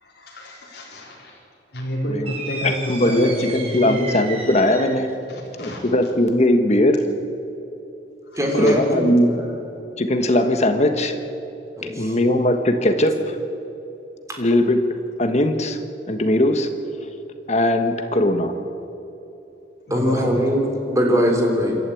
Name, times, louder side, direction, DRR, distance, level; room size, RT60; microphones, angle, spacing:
voice 1, 0.0-1.4 1.7-2.8 3.0-4.0 5.3-5.8 8.3-8.7 9.3-9.6 19.9-20.4, equal, 60° left, -3 dB, 3.8 m, -30 dB
sound 1, 2.3-5.1, right 3 dB, 35° right, 3.5 m, -34 dB
voice 2, 2.6-5.1 5.6-7.0 8.5-9.3 10.0-11.1 12.0-13.4 14.4-14.8 15.2-15.8 16.1-16.7 17.5-18.5, left 1 dB, 35° left, 7 dB, 1.4 m, -19 dB
voice 3, 8.4-9.0 11.8-12.1 14.3-14.4 19.9-21.8, equal, 15° right, 1 dB, 3.3 m, -21 dB
27.0 x 12.5 x 8.5 m, 2.9 s
head